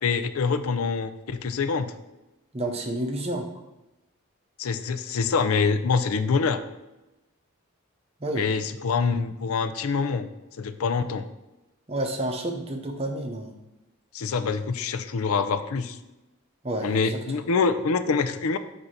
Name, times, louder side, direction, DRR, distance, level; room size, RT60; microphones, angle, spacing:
voice 1, 0.0-1.9 4.6-6.6 8.4-10.3 10.6-11.3 14.1-16.0 16.8-18.6, left 5 dB, 80° left, 11 dB, 0.5 m, -25 dB
voice 2, 2.5-3.5 8.2-8.5 11.9-13.5 16.6-17.4, right 1 dB, 30° right, 3 dB, 0.7 m, -30 dB
7.9 x 2.7 x 5.7 m, 0.99 s
head